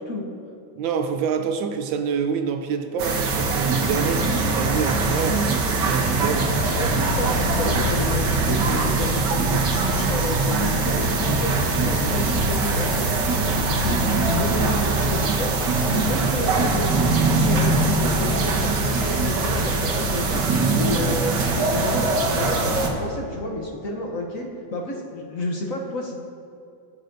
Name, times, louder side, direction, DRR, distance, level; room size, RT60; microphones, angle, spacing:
voice 1, 0.8-5.5 5.9-6.5 20.8-21.1, right 6 dB, 80° right, 7 dB, 1.4 m, -26 dB
sound 1, 3.0-22.9, right 3 dB, 65° right, 1.6 m, -22 dB
voice 2, 6.7-9.6 10.0-13.1 13.5-15.6 15.9-17.0 17.3-20.4 20.7-26.2, left 2 dB, 55° left, -1 dB, 1.1 m, -30 dB
15.5 x 7.8 x 2.6 m, 2.6 s
omnidirectional pair, 2.1 m